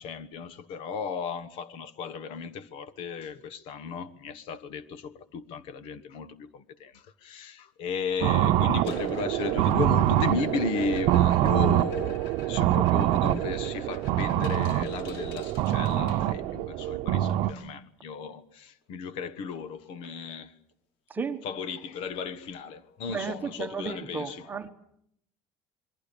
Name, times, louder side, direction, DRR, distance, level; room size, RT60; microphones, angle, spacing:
voice 1, 0.0-20.6 21.4-24.7, left 5 dB, 50° left, 1.3 m, -35 dB
sound 1, 8.2-17.5, right 13 dB, 55° right, 0.9 m, -25 dB
sound 2, 8.7-16.7 18.9-19.0 19.3-19.6 20.0-20.1 20.7-20.8 22.7-22.8, left 5 dB, 90° left, 5.3 m, -50 dB
voice 2, 21.1-21.4 23.1-24.7, right 5 dB, 15° right, 1.2 m, -33 dB
27.5 x 22.0 x 7.0 m
cardioid pair, 175°, 11 cm